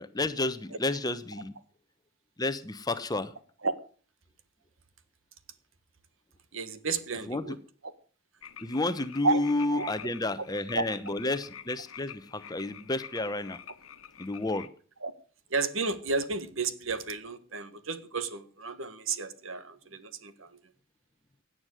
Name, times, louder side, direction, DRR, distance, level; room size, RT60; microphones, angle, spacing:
voice 1, 0.0-1.5 2.4-3.3 7.3-7.4 8.6-13.6 14.2-14.7, left 2 dB, 20° left, 0.9 m, -31 dB
voice 2, 6.5-7.6 9.2-9.4 9.7-9.9 10.7-10.8 15.0-15.1 15.5-20.6, right 4 dB, 75° right, 1.6 m, -32 dB
sound 1, 8.4-14.7, left 8 dB, 90° left, 1.2 m, -48 dB
17.0 x 9.3 x 6.4 m
head